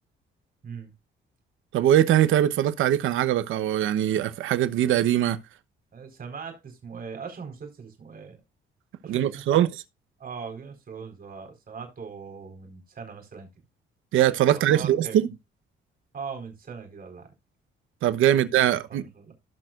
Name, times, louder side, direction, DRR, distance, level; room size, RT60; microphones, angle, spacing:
voice 1, 1.7-5.4 9.1-9.7 14.1-15.3 18.0-19.0, right 11 dB, 85° right, 1.0 m, -22 dB
voice 2, 5.9-8.4 9.0-9.7 10.2-13.5 14.5-15.2 16.1-17.3 18.3-19.3, right 5 dB, 50° right, 4.5 m, -40 dB
18.5 x 6.2 x 2.5 m
cardioid pair, 90°, 20 cm